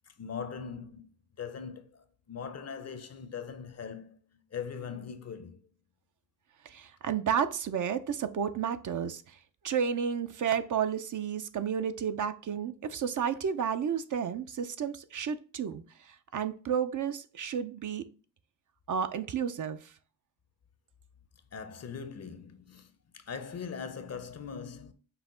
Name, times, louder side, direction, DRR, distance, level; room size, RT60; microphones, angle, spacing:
voice 1, 0.1-1.1 1.4-5.6 21.5-24.9, left 6 dB, 40° left, 0.6 m, -41 dB
voice 2, 6.6-9.4 9.6-18.0 18.9-19.9, right 7 dB, 50° right, 0.5 m, -32 dB
5.6 x 2.1 x 3.7 m
supercardioid pair, 55°, 39 cm